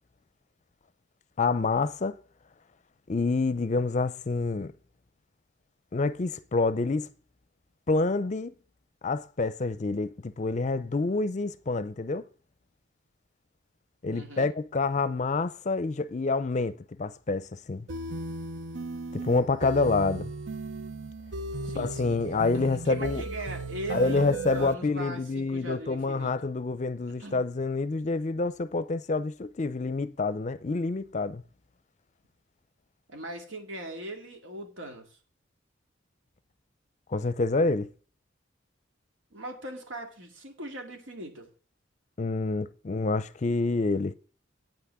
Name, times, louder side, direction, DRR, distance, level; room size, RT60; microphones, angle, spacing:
voice 1, 1.4-2.2 3.1-4.7 5.9-7.1 7.9-8.5 9.0-12.3 14.0-17.9 19.1-20.3 21.8-23.2 23.9-31.4 37.1-37.9 42.2-44.1, left 3 dB, 40° left, 0.5 m, -27 dB
voice 2, 14.1-14.5 21.6-26.5 27.2-27.5 33.1-35.2 39.3-41.5, right 2 dB, 85° right, 2.3 m, -40 dB
sound 1, 17.9-24.7, right 3 dB, 70° right, 0.7 m, -36 dB
8.9 x 5.9 x 8.0 m
head